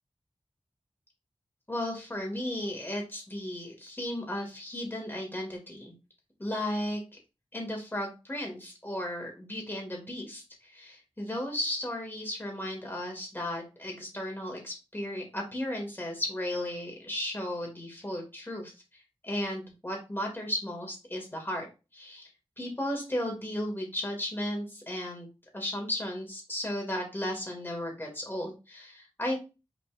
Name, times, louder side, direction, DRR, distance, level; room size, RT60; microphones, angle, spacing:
voice 1, 1.7-5.9 6.4-7.0 7.5-18.7 19.2-21.7 21.9-22.3 22.6-25.3 25.5-29.4, left 1 dB, 20° left, 0 dB, 1.9 m, -35 dB
5.3 x 4.3 x 2.2 m, 0.29 s
wide cardioid pair, 75°, 11 cm